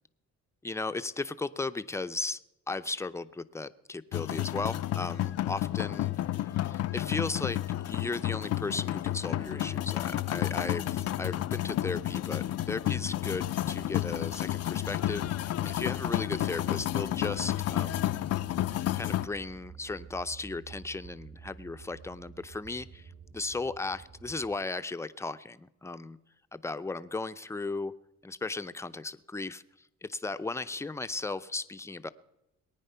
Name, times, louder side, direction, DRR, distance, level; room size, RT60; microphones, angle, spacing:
voice 1, 0.6-2.4 2.7-18.2 19.0-26.2 26.5-27.9 28.2-29.6 30.0-32.1, left 3 dB, 10° left, 12 dB, 0.6 m, -36 dB
sound 1, 4.1-19.3, left 14 dB, 60° left, 0.5 m, -31 dB
sound 2, 9.0-24.6, right 5 dB, 50° right, 2.2 m, -51 dB
20.5 x 9.2 x 5.6 m, 0.91 s
cardioid pair, 90°, 29 cm